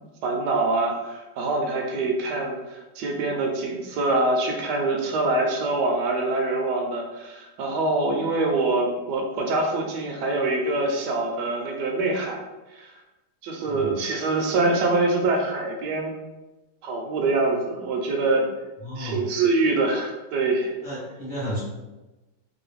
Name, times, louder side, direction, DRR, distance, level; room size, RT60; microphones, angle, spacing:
voice 1, 0.0-12.4 12.7-13.0 13.4-16.1 16.8-18.5 19.0-20.7, right 2 dB, 75° right, 2 dB, 1.1 m, -25 dB
voice 2, 18.8-19.2 20.8-21.6, equal, 35° left, -9 dB, 0.9 m, -32 dB
3.0 x 2.6 x 3.2 m, 1.1 s
omnidirectional pair, 1.8 m